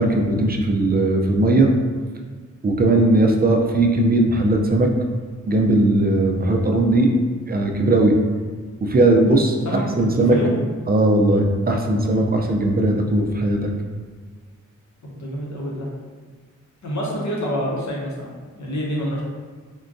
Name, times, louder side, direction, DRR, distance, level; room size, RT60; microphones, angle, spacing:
voice 1, 0.0-1.7 2.6-4.9 5.5-7.1 7.5-8.1 8.8-10.4 10.9-13.7, right 2 dB, 30° right, 2 dB, 0.4 m, -18 dB
voice 2, 15.0-15.9 16.8-19.2, equal, 65° left, -3 dB, 0.8 m, -27 dB
3.7 x 2.2 x 2.5 m, 1.5 s
wide cardioid pair, 75°, 31 cm